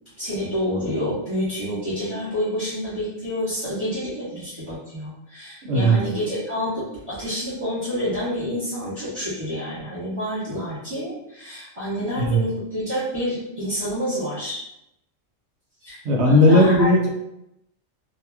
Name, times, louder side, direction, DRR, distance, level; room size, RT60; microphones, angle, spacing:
voice 1, 0.2-14.7 15.8-16.9, equal, 25° right, -14 dB, 1.1 m, -28 dB
voice 2, 5.6-6.0 12.2-12.4 16.0-17.1, equal, 65° right, 0 dB, 0.9 m, -16 dB
2.9 x 2.6 x 2.2 m, 0.83 s
omnidirectional pair, 1.3 m